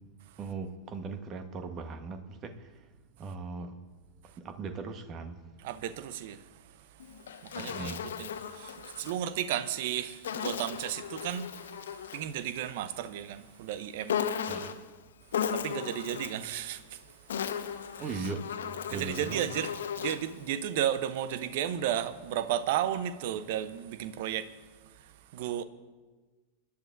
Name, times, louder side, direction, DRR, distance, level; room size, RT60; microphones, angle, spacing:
voice 1, 0.4-2.7 3.2-3.7 4.4-5.4 7.6-8.1 14.5-14.7 18.0-18.5 18.9-19.5, right 4 dB, 30° right, 1.2 m, -38 dB
voice 2, 5.6-6.6 7.4-11.5 12.1-14.2 15.5-17.1 17.4-18.3 18.9-24.5 24.8-25.6, right 10 dB, 50° right, 0.8 m, -34 dB
Insect, 7.0-9.2 10.2-12.3 14.1-14.9 15.3-16.5 17.1-20.3, left 8 dB, 65° left, 0.8 m, -36 dB
27.5 x 11.5 x 2.6 m
figure-of-eight pair, 90°, 0 cm